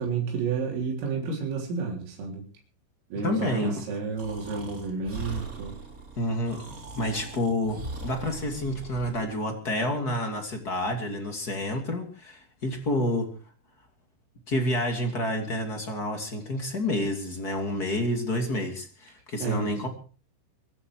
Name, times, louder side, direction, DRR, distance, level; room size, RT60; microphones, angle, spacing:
voice 1, 0.0-2.4 3.1-5.8 19.4-19.9, right 5 dB, 85° right, -1 dB, 6.4 m, -31 dB
voice 2, 3.2-3.8 6.2-6.6 6.9-13.3 14.5-19.9, left 1 dB, 30° left, 5 dB, 1.8 m, -29 dB
Breathing, 4.2-9.3, right 2 dB, 20° right, 2.9 m, -40 dB
24.0 x 11.0 x 4.8 m, 0.39 s
omnidirectional pair, 5.8 m